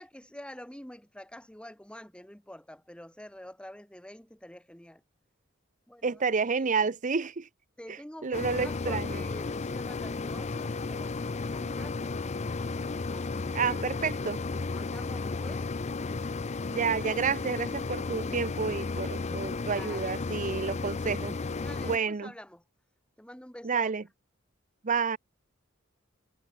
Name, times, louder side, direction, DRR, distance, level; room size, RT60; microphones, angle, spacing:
voice 1, 0.0-5.0 5.9-6.7 7.8-12.0 13.1-13.8 14.7-15.6 19.6-20.3 21.6-22.6 23.2-24.0, left 1 dB, 5° left, 2.6 m, -47 dB
voice 2, 6.0-7.5 8.2-9.2 13.5-14.4 16.7-21.4 21.8-22.3 23.6-24.0 24.8-25.2, right 5 dB, 40° right, 0.7 m, -30 dB
sound 1, 8.3-22.0, left 3 dB, 35° left, 0.5 m, -34 dB
head